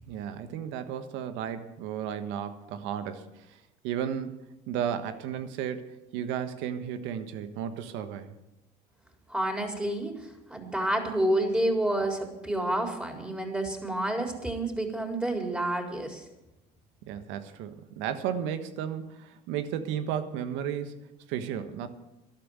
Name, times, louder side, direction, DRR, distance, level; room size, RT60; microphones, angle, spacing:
voice 1, 0.0-3.6 3.8-4.4 4.7-8.3 17.0-21.9, right 9 dB, 75° right, 10 dB, 1.4 m, -34 dB
voice 2, 9.3-16.2, right 1 dB, 5° right, 3 dB, 4.2 m, -29 dB
13.0 x 11.5 x 8.1 m, 0.91 s
hypercardioid pair, 70°, 20 cm